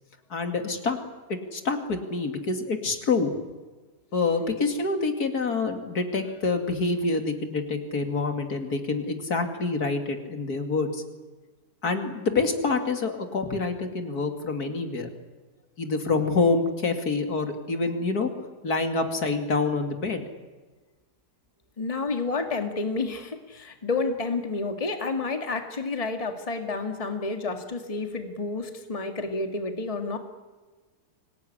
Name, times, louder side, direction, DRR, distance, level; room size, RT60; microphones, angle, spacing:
voice 1, 0.3-1.0 1.5-3.4 4.1-11.0 11.8-15.1 15.8-18.3 18.6-20.2, left 3 dB, 65° left, 6 dB, 2.9 m, -26 dB
voice 2, 21.8-30.2, left 3 dB, 20° left, 6 dB, 1.9 m, -30 dB
25.0 x 18.5 x 10.0 m, 1.3 s
omnidirectional pair, 1.8 m